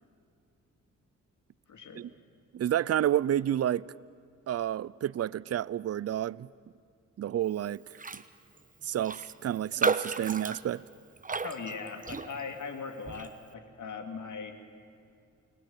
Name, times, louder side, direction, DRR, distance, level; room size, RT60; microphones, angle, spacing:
voice 1, 1.7-2.0 11.4-14.5, left 5 dB, 70° left, 2.9 m, -39 dB
voice 2, 2.5-3.9 4.5-6.5 7.2-8.2 8.8-10.8, right 11 dB, 50° right, 0.6 m, -30 dB
Raindrop, 7.9-8.3 8.6-8.7 9.0-12.6 13.1-13.3, right 4 dB, 25° right, 1.1 m, -33 dB
29.0 x 20.0 x 9.0 m
cardioid pair, 60°, 31 cm